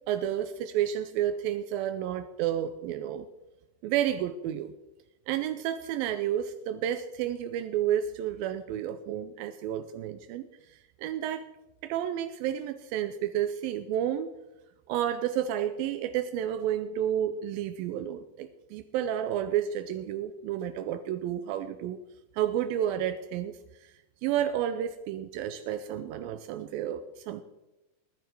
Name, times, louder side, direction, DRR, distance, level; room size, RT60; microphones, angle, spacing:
voice 1, 0.1-3.3 3.8-4.7 5.3-11.5 11.8-14.3 14.9-22.0 22.3-23.9 24.2-27.4, right 10 dB, 85° right, 10 dB, 2.4 m, -31 dB
20.0 x 10.5 x 4.6 m, 0.98 s
omnidirectional pair, 4.1 m